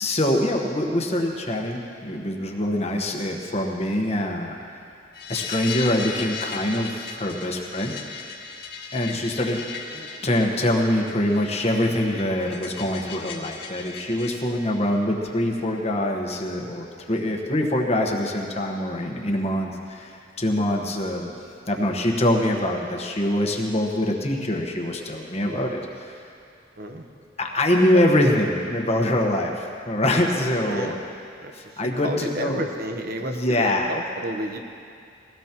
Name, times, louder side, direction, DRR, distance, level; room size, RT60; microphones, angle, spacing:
voice 1, 0.0-4.8 5.3-7.9 8.9-9.6 10.2-21.3 21.7-26.1 27.4-30.9 31.5-32.6 33.2-33.9, left 1 dB, 35° left, 1 dB, 1.2 m, -24 dB
sound 1, 5.1-14.3, left 5 dB, 60° left, 1.8 m, -37 dB
voice 2, 26.8-27.1 27.9-28.0 30.4-31.0 31.4-34.6, right 1 dB, 50° right, 4 dB, 0.9 m, -32 dB
21.0 x 16.5 x 3.0 m, 2.4 s
head